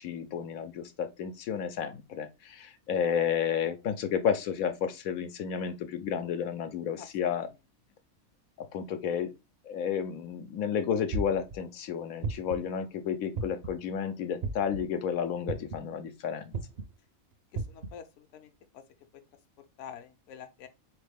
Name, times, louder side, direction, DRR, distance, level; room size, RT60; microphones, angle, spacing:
voice 1, 0.0-7.5 8.6-9.3 9.7-16.5, left 8 dB, 90° left, 1.1 m, -31 dB
sound 1, 11.1-11.6 12.2-12.7 13.4-13.8 14.4-14.8 15.5-15.9 16.5-16.8 17.6-17.9, right 3 dB, 55° right, 0.8 m, -33 dB
voice 2, 17.5-18.8 19.8-20.7, left 8 dB, 65° left, 1.0 m, -47 dB
4.1 x 3.2 x 3.4 m
omnidirectional pair, 1.4 m